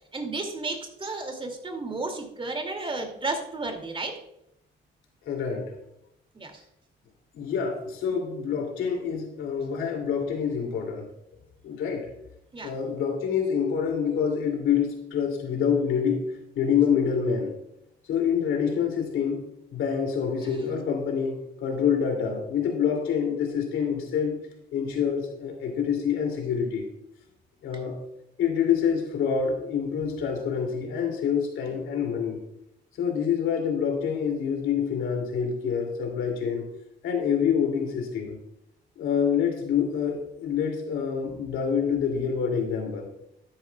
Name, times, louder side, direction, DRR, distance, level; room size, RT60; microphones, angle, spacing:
voice 1, 0.1-4.2 6.3-6.6 12.5-12.7 20.4-20.7, right 3 dB, 25° right, 4 dB, 2.5 m, -33 dB
voice 2, 5.3-5.6 7.3-11.1 11.6-12.1 12.6-16.2 16.6-17.5 18.1-19.4 19.7-24.4 24.7-26.9 27.6-28.0 28.4-32.4 33.0-36.6 37.0-38.4 39.0-43.1, left 7 dB, 85° left, 2 dB, 2.8 m, -26 dB
13.0 x 10.5 x 2.3 m, 0.81 s
cardioid pair, 90°, 20 cm